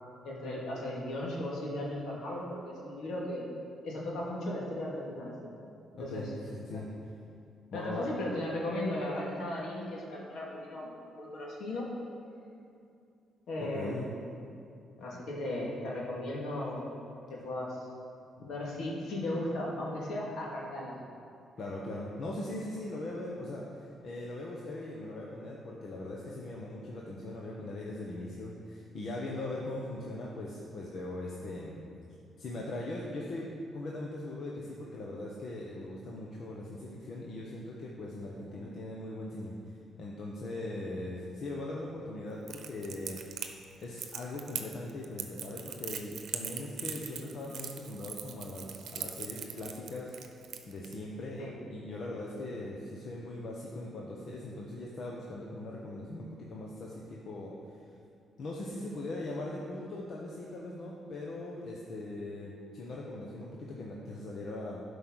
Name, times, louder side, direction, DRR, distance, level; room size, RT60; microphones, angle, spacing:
voice 1, 0.2-3.5 3.8-5.5 6.0-6.2 6.7-6.8 7.7-10.9 11.2-11.9 13.5-14.2 15.0-16.9 17.3-17.9 18.4-21.0 38.4-38.6 51.4-51.6, left 1 dB, 70° left, -4 dB, 2.6 m, -36 dB
voice 2, 5.9-6.9 7.7-8.1 13.6-14.1 18.4-18.5 21.6-31.8 32.4-33.5 33.7-50.1 50.7-57.8 58.4-64.8, left 2 dB, 55° left, -3 dB, 1.2 m, -40 dB
Crackle, 42.5-50.9, right 8 dB, 70° right, 0.8 m, -40 dB
11.5 x 5.4 x 6.4 m, 2.5 s
cardioid pair, 90°, 0 cm